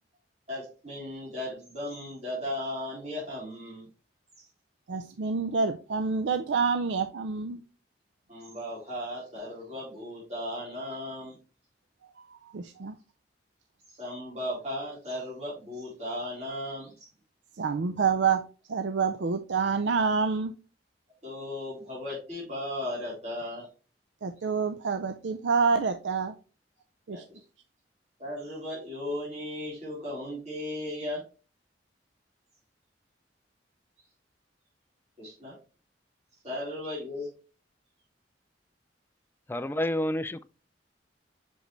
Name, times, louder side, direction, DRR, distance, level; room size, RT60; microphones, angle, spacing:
voice 1, 0.5-3.9 4.4-4.5 8.3-11.4 13.9-17.1 21.2-23.7 27.1-27.2 28.2-31.2 35.2-35.6 36.4-37.3, left 1 dB, 40° right, 3.8 m, -36 dB
voice 2, 4.9-7.6 12.5-12.9 17.6-20.5 24.2-26.3 27.1-27.2, right 5 dB, 85° right, 0.5 m, -27 dB
voice 3, 39.5-40.4, left 1 dB, 10° left, 0.3 m, -29 dB
6.3 x 5.1 x 3.2 m
head